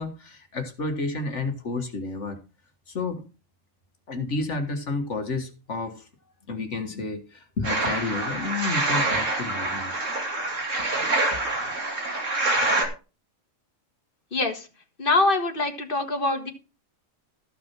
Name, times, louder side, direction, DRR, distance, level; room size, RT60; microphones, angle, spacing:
voice 1, 0.0-2.4 2.9-3.2 4.1-6.1 6.5-9.9 11.3-11.4, left 3 dB, 60° left, 6 dB, 1.8 m, -31 dB
sound 1, 7.6-12.9, right 2 dB, 70° right, 3.0 m, -26 dB
voice 2, 15.0-16.5, left 2 dB, 40° left, 6 dB, 1.9 m, -24 dB
14.0 x 6.0 x 6.0 m, 0.32 s
omnidirectional pair, 1.4 m